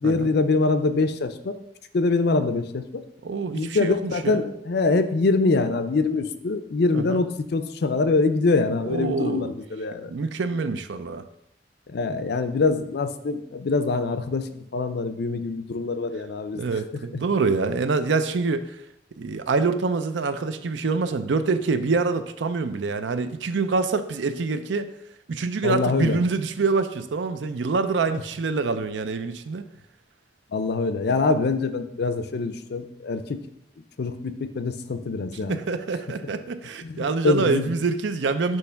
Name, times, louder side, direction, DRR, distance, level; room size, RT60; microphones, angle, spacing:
voice 1, 0.0-1.6 1.9-3.0 3.5-10.1 11.9-16.6 17.1-17.2 17.7-17.8 25.6-26.2 30.5-33.4 34.0-35.6 36.2-36.3 36.8-37.7, left 3 dB, 60° left, 10 dB, 0.5 m, -24 dB
voice 2, 3.2-4.5 6.9-7.3 8.8-9.5 10.1-11.2 16.5-18.8 19.2-24.9 25.3-29.6 35.5-38.6, right 4 dB, 80° right, 11 dB, 0.5 m, -26 dB
6.3 x 3.2 x 5.6 m, 0.80 s
head